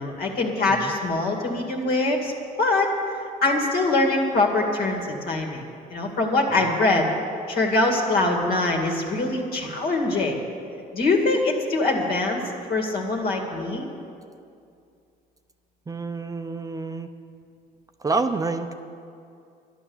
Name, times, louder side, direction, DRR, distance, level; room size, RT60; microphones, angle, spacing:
voice 1, 0.0-2.3 2.6-2.9 3.4-5.6 5.9-7.1 7.5-10.4 10.9-12.4 12.7-13.9, left 2 dB, 65° left, 1 dB, 2.3 m, -23 dB
voice 2, 15.9-17.1 18.0-18.7, right 3 dB, 20° right, 7 dB, 0.6 m, -28 dB
12.0 x 11.0 x 7.2 m, 2.5 s
cardioid pair, 110°, 17 cm